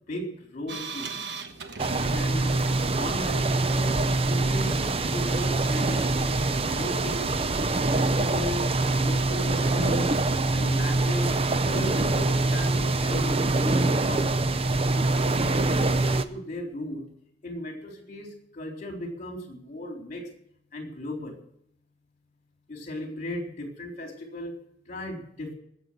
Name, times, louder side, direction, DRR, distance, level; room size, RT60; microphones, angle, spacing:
voice 1, 0.1-1.1 2.1-2.6 2.9-6.3 6.7-7.5 7.9-8.7 9.0-10.2 10.5-11.4 11.7-14.3 14.9-17.0 17.4-20.3 20.7-21.4 22.7-24.5 24.9-25.5, left 1 dB, 40° left, 2 dB, 4.0 m, -36 dB
sound 1, 0.7-2.8 3.2-3.8 4.3-4.8 5.3-5.9 6.4-6.9 7.4-8.0 9.5-9.7, right 5 dB, 60° right, 1.2 m, -41 dB
sound 2, 1.8-16.2, right 2 dB, 30° right, 0.7 m, -24 dB
19.0 x 7.5 x 7.7 m, 0.71 s
head